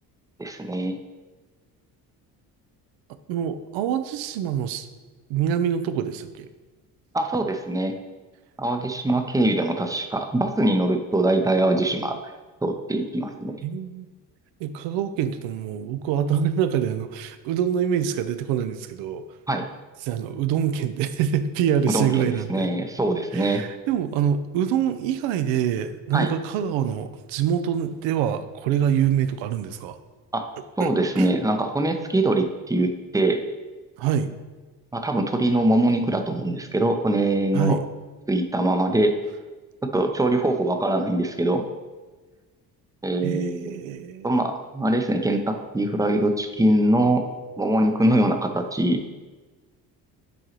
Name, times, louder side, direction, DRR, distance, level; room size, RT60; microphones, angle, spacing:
voice 1, 0.4-1.0 7.1-7.9 8.6-12.3 12.6-13.6 19.5-19.6 21.9-23.6 26.1-26.3 30.3-30.4 30.8-33.4 34.9-37.8 38.3-39.1 39.8-41.7 43.0-43.8 44.2-47.2 47.6-49.0, right 1 dB, 5° right, 5 dB, 0.6 m, -23 dB
voice 2, 3.3-4.9 5.3-6.5 13.6-14.1 14.6-19.2 20.0-22.7 23.3-30.0 30.8-30.9 31.1-31.3 34.0-34.3 37.5-37.8 43.2-44.3, right 9 dB, 65° right, 11 dB, 0.6 m, -25 dB
7.8 x 4.7 x 3.0 m, 1.3 s
hypercardioid pair, 55°, 49 cm